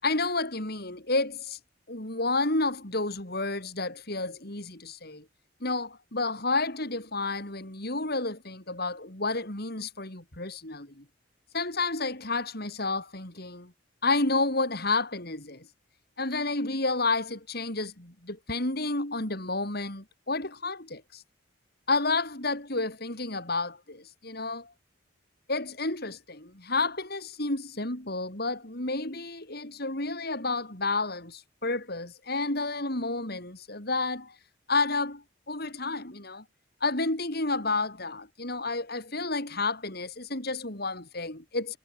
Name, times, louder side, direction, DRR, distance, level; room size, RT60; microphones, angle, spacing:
voice 1, 0.0-1.6 1.9-5.2 5.6-11.0 11.5-13.7 14.0-15.6 16.2-21.2 21.9-24.7 25.5-34.3 34.7-36.4 36.8-41.8, left 3 dB, 50° left, 4.6 m, -30 dB
head